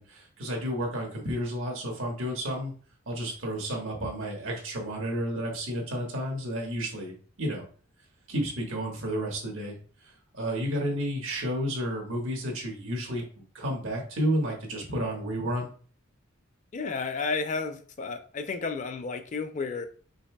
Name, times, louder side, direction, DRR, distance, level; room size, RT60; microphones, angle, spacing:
voice 1, 0.0-2.7 3.1-7.6 8.3-9.7 10.3-15.7, equal, 85° right, 0 dB, 1.4 m, -31 dB
voice 2, 16.7-19.9, left 4 dB, 35° left, 8 dB, 0.4 m, -32 dB
5.4 x 3.2 x 2.2 m, 0.42 s
head